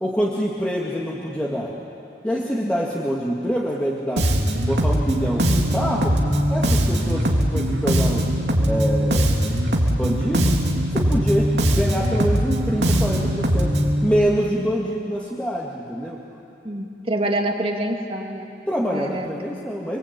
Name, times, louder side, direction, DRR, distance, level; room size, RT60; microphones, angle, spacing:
voice 1, 0.0-1.7 2.2-4.3 4.6-6.2 6.5-8.3 8.6-9.6 9.9-10.6 10.9-13.7 14.0-16.2 18.7-20.0, equal, 5° left, -4 dB, 2.0 m, -25 dB
Bass guitar, 4.2-14.0, equal, 75° right, 3.2 m, -21 dB
voice 2, 16.6-18.5 18.9-19.3, right 1 dB, 30° right, 2 dB, 2.4 m, -26 dB
29.5 x 22.5 x 8.8 m, 2.7 s
head